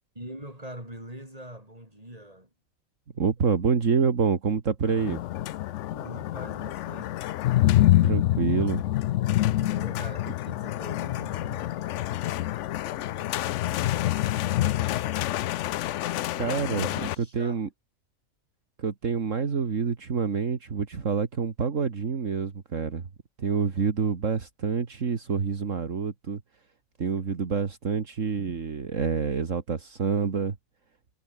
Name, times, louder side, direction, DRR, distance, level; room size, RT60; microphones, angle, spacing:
voice 1, 0.1-2.5 5.9-7.2 9.6-14.9 16.8-17.6, right 1 dB, 25° right, 8.2 m, -44 dB
voice 2, 3.2-5.2 8.0-8.8 16.3-16.9 17.2-17.7 18.8-23.0 23.4-26.4 27.0-30.6, right 5 dB, 65° right, 2.2 m, -27 dB
sound 1, 4.9-17.2, left 14 dB, 70° left, 0.8 m, -26 dB
omnidirectional pair, 1.4 m